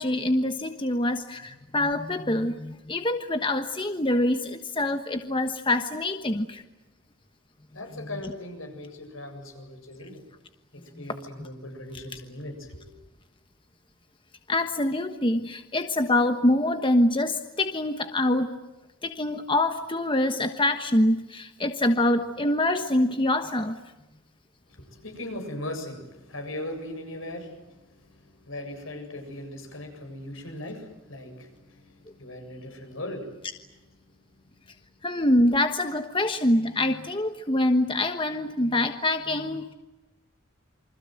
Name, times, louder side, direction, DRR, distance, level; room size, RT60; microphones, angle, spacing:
voice 1, 0.0-6.6 8.0-8.1 11.4-11.5 14.5-18.5 19.0-23.8 35.0-39.7, left 1 dB, 25° left, 7 dB, 1.2 m, -25 dB
voice 2, 7.7-10.2 10.7-12.9 24.7-33.5 34.0-34.7, left 1 dB, 75° left, 5 dB, 7.6 m, -39 dB
28.5 x 25.0 x 7.8 m, 1.0 s
head